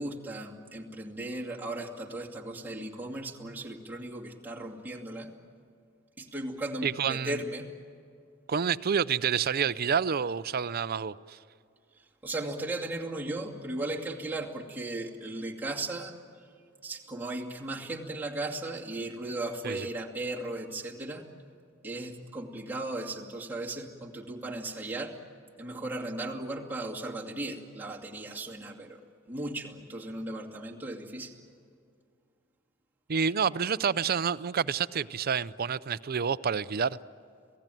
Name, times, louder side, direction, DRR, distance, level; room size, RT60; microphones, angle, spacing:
voice 1, 0.0-5.3 6.2-7.7 12.2-16.2 16.8-21.2 21.8-25.1 25.6-29.0 29.3-31.3, right 2 dB, 10° right, 2.5 m, -36 dB
voice 2, 6.8-7.4 8.5-11.4 19.6-19.9 33.1-37.0, right 6 dB, 50° right, 0.5 m, -28 dB
27.5 x 18.0 x 9.2 m
head